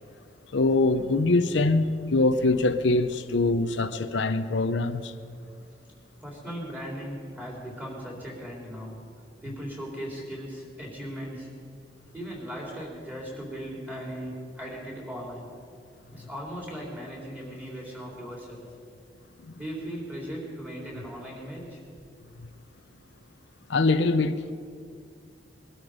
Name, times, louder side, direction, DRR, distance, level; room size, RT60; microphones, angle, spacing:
voice 1, 0.5-5.1 19.4-19.5 22.4-22.5 23.7-24.5, left 2 dB, 80° left, 0.7 m, -23 dB
voice 2, 6.2-9.0 9.4-11.5 12.1-15.5 16.1-18.7 19.6-21.8, equal, 10° right, 3.8 m, -38 dB
22.0 x 12.5 x 5.1 m
head